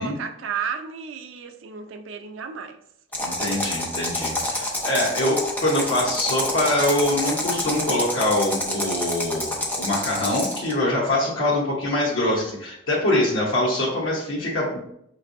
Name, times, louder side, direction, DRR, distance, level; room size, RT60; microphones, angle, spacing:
voice 1, 0.0-2.8 5.0-5.1, right 6 dB, 80° right, 0.5 m, -33 dB
sound 1, 3.1-10.7, left 1 dB, 10° left, 0.6 m, -28 dB
voice 2, 3.2-14.8, left 1 dB, 80° left, 1.0 m, -24 dB
5.2 x 3.2 x 2.6 m
head